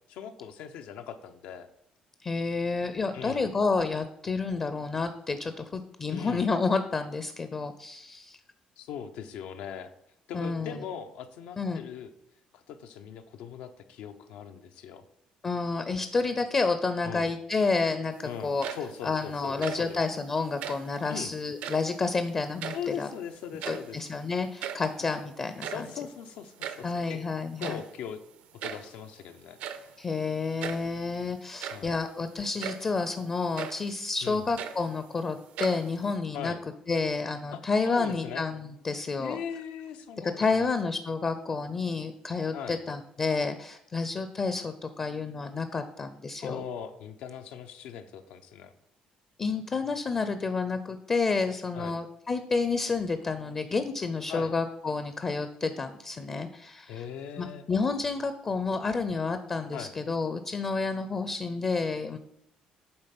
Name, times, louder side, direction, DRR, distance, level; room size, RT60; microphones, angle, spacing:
voice 1, 0.1-1.7 3.1-3.4 6.1-6.5 8.8-9.9 10.3-12.1 12.5-15.0 17.0-17.3 18.2-20.0 21.1-21.3 22.7-24.0 25.7-27.2 27.6-28.2 28.6-29.6 31.7-31.9 34.2-34.4 36.3-36.6 37.5-38.4 39.2-40.7 42.5-42.8 46.4-48.7 51.7-51.9 54.3-54.5 56.9-57.6 59.7-59.9, left 8 dB, 90° left, 7 dB, 0.7 m, -40 dB
voice 2, 2.2-8.4 10.3-10.8 11.6-11.8 15.4-18.7 19.0-23.1 23.6-25.9 26.8-27.8 30.0-36.5 36.9-39.4 40.2-46.6 49.4-57.0 57.4-62.2, left 4 dB, 30° left, 9 dB, 0.5 m, -30 dB
sound 1, 18.4-19.1 19.4-20.0 20.5-20.9 21.5-22.0 22.3-23.2 23.4-24.0 24.3-24.4 24.6-24.9 25.4-26.9 27.6-28.0 28.6-29.0 29.6-29.9 30.6-30.9 31.4-32.0 32.6-32.9 33.5-33.9 34.3-35.2 35.5-36.2, right 9 dB, 80° right, 0.7 m, -38 dB
8.7 x 3.6 x 5.9 m, 0.76 s
cardioid pair, 135°, 2 cm